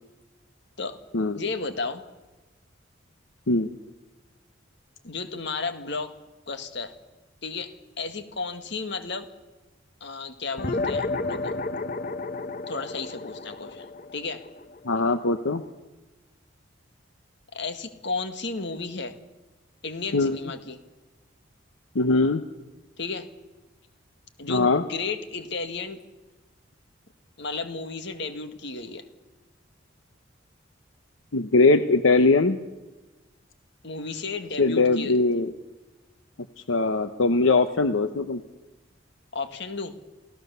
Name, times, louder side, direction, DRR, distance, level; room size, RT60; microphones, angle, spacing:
voice 1, 1.3-2.0 5.0-6.2 6.5-6.9 7.4-9.3 10.0-11.5 12.7-13.9 14.1-14.4 17.5-19.2 19.8-20.8 23.0-23.3 24.4-26.0 27.4-29.0 33.8-35.1 39.3-39.9, left 4 dB, 60° left, 9 dB, 1.8 m, -33 dB
sound 1, 10.6-15.4, left 3 dB, 45° left, 1.0 m, -31 dB
voice 2, 14.8-15.6 20.1-20.4 21.9-22.4 24.5-24.8 31.3-32.6 34.6-35.5 36.7-38.4, left 3 dB, 85° left, 10 dB, 1.0 m, -21 dB
28.5 x 16.5 x 6.9 m, 1.1 s
head